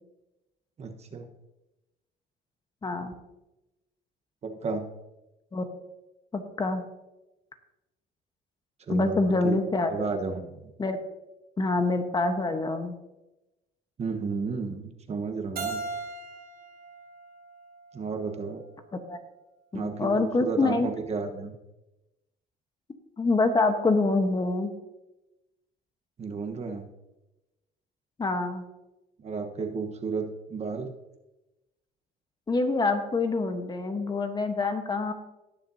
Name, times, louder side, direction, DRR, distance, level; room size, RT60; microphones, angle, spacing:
voice 1, 0.8-1.3 4.4-4.9 8.9-9.6 9.9-10.6 14.0-15.8 17.9-18.6 19.7-21.5 26.2-26.9 29.2-30.9, right 4 dB, 40° right, 5 dB, 1.2 m, -32 dB
voice 2, 2.8-3.1 5.5-5.6 6.3-6.8 8.9-10.1 10.8-11.0 11.6-13.0 18.9-19.2 19.7-20.9 23.2-24.7 28.2-28.6 32.5-35.1, left 3 dB, 25° left, 6 dB, 1.1 m, -26 dB
Keyboard (musical), 15.6-18.4, right 4 dB, 65° right, 2.7 m, -38 dB
18.5 x 6.7 x 2.8 m, 0.97 s
cardioid pair, 110°, 17 cm